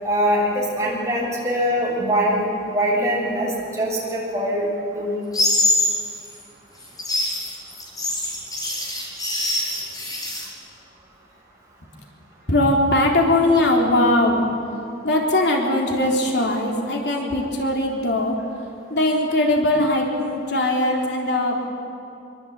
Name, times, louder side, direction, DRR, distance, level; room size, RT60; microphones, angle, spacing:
voice 1, 0.0-4.7 4.9-5.2, equal, 15° right, -3 dB, 7.3 m, -22 dB
sound 1, 5.3-6.0 6.8-10.5, left 2 dB, 20° left, 5.8 m, -23 dB
voice 2, 12.5-14.4 15.0-18.4 18.9-21.7, left 1 dB, 65° left, 0 dB, 3.7 m, -20 dB
25.5 x 23.5 x 9.0 m, 2.6 s
head